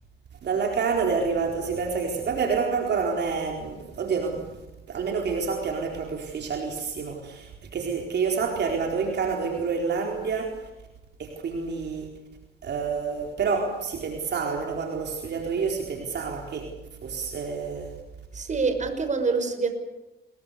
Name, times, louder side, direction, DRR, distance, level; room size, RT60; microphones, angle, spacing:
voice 1, 0.4-4.5 4.9-10.6 11.2-12.1 12.6-16.7 17.0-17.9, right 5 dB, 60° right, 2 dB, 4.3 m, -28 dB
voice 2, 18.3-19.7, right 4 dB, 40° right, 7 dB, 5.8 m, -25 dB
29.0 x 23.0 x 6.8 m, 0.98 s
cardioid pair, 90°, 20 cm